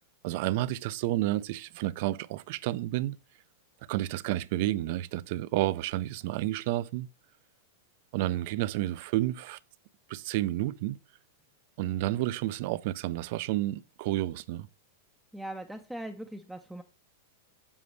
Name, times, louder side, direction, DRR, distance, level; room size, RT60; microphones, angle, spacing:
voice 1, 0.2-3.2 3.9-7.1 8.1-9.6 10.1-11.0 11.8-14.7, right 15 dB, 55° right, 0.4 m, -30 dB
voice 2, 15.3-16.8, right 1 dB, ahead, 0.5 m, -40 dB
7.1 x 6.8 x 3.2 m
supercardioid pair, 140°, 0 cm